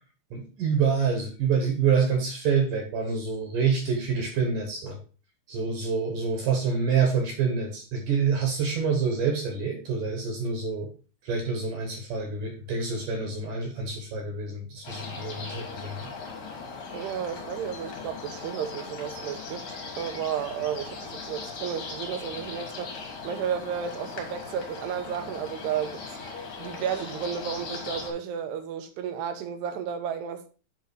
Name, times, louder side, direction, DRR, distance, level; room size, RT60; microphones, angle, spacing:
voice 1, 0.3-5.0 5.5-10.9 11.2-16.0, right 5 dB, 65° right, 2.4 m, -27 dB
sound 1, 14.8-28.1, left 4 dB, 55° left, 2.7 m, -39 dB
voice 2, 16.9-26.0 26.6-30.5, right 8 dB, 80° right, 2.8 m, -33 dB
8.0 x 3.9 x 4.6 m
omnidirectional pair, 4.8 m